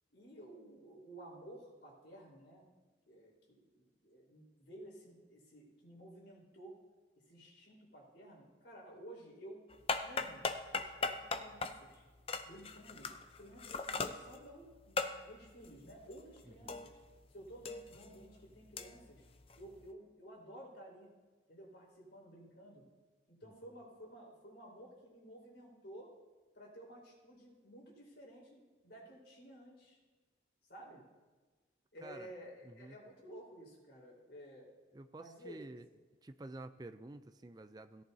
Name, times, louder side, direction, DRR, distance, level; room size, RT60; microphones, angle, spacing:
voice 1, 0.1-2.7 3.1-6.7 7.3-9.7 10.0-12.0 12.4-13.1 13.4-17.0 17.3-19.2 19.6-21.1 21.5-22.8 23.3-26.1 26.5-30.0 30.7-31.0 31.9-34.7 35.1-35.6, right 1 dB, 70° left, -4 dB, 4.1 m, -54 dB
sound 1, 9.7-17.2 17.5-19.9, left 4 dB, 30° left, 0.5 m, -40 dB
voice 2, 16.5-16.9 23.4-23.5 32.0-32.3 32.7-33.0 34.9-35.9 36.2-38.0, right 2 dB, 20° right, 10 dB, 0.4 m, -50 dB
17.0 x 10.5 x 2.8 m, 1.3 s
head